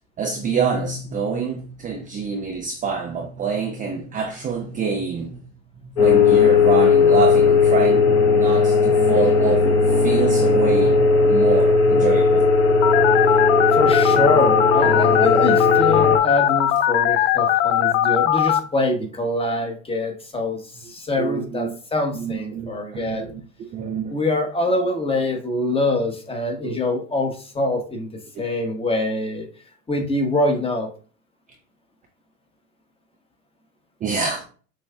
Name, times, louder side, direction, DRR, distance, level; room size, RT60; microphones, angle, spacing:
voice 1, 0.2-5.4 5.9-12.5 21.2-21.7 22.1-23.4 23.7-24.1 26.6-26.8 34.0-34.4, right 5 dB, 20° right, 0.4 m, -26 dB
sound 1, 6.0-16.2, left 4 dB, 35° left, 1.1 m, -17 dB
Telephone, 12.8-18.6, left 11 dB, 70° left, 0.5 m, -19 dB
voice 2, 13.7-23.3 24.1-29.5 29.9-30.9, left 2 dB, 15° left, 1.0 m, -24 dB
6.2 x 2.4 x 2.2 m
hypercardioid pair, 100°, 40 cm